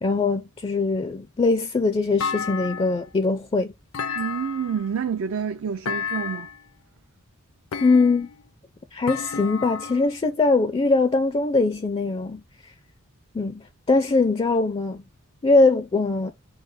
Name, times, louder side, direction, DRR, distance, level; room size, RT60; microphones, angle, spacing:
voice 1, 0.0-3.7 7.8-8.3 8.9-12.4 13.3-15.0 15.4-16.3, left 3 dB, 25° left, 0.4 m, -21 dB
Thump thud, 2.2-3.1 3.9-4.9 5.8-6.6 7.7-8.4 9.1-10.1, left 6 dB, 70° left, 0.6 m, -31 dB
voice 2, 4.2-6.5, right 7 dB, 65° right, 0.4 m, -28 dB
5.5 x 2.0 x 4.7 m
head